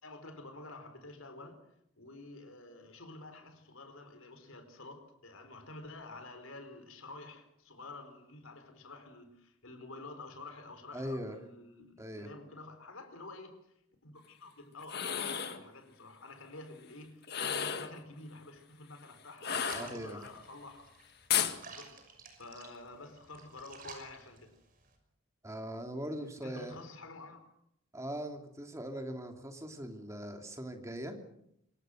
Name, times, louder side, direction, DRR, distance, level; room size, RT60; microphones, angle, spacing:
voice 1, 0.0-1.6 2.0-13.6 14.0-20.9 21.6-21.9 22.3-24.5 26.4-27.4, left 2 dB, 80° left, 4.5 m, -49 dB
voice 2, 10.9-11.4 12.0-12.3 19.7-20.2 25.4-26.8 27.9-31.2, equal, 15° right, 2.9 m, -40 dB
sound 1, 14.8-15.6 17.2-18.0 19.4-20.3 21.3-21.6, left 8 dB, 50° left, 1.8 m, -33 dB
sound 2, 19.6-25.0, right 5 dB, 40° right, 6.1 m, -53 dB
26.0 x 22.5 x 6.5 m
head